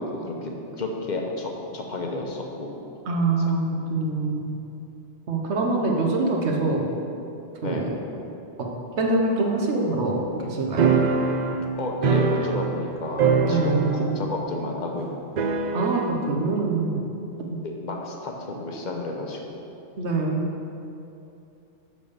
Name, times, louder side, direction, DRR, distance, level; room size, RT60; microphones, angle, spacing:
voice 1, 0.0-2.7 3.4-3.5 7.6-8.0 11.7-15.5 17.6-19.6, left 2 dB, 45° left, 1 dB, 1.0 m, -31 dB
voice 2, 3.1-4.5 5.3-6.9 7.6-7.9 9.0-10.9 13.4-14.1 15.7-17.0 17.5-17.6 20.0-20.4, right 3 dB, 75° right, 0 dB, 1.3 m, -24 dB
sound 1, 10.8-12.9 13.2-14.2 14.4-14.5 15.4-16.2, right 5 dB, 55° right, 0.5 m, -23 dB
6.3 x 5.4 x 6.7 m, 2.8 s
omnidirectional pair, 1.2 m